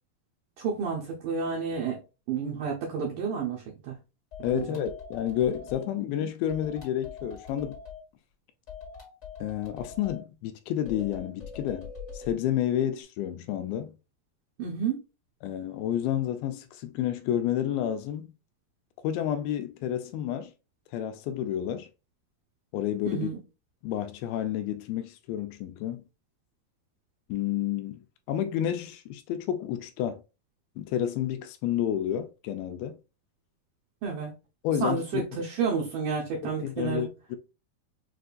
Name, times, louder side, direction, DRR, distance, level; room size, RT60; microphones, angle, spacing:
voice 1, 0.6-2.0 2.3-4.0 4.5-4.6 6.0-6.1 14.6-15.0 23.1-23.4 34.0-34.3 34.8-37.1, right 5 dB, 70° right, 2.2 m, -30 dB
sound 1, 4.3-5.9 6.5-8.0 8.7-10.2 10.8-12.4, left 6 dB, 30° left, 1.4 m, -43 dB
voice 2, 4.4-7.8 9.4-14.0 15.4-18.3 19.0-20.5 20.9-21.9 22.7-23.3 23.8-26.0 27.3-28.0 28.3-30.2 30.8-33.0 34.6-35.3 36.4-37.4, left 10 dB, 85° left, 2.3 m, -30 dB
6.6 x 2.6 x 2.4 m
omnidirectional pair, 4.4 m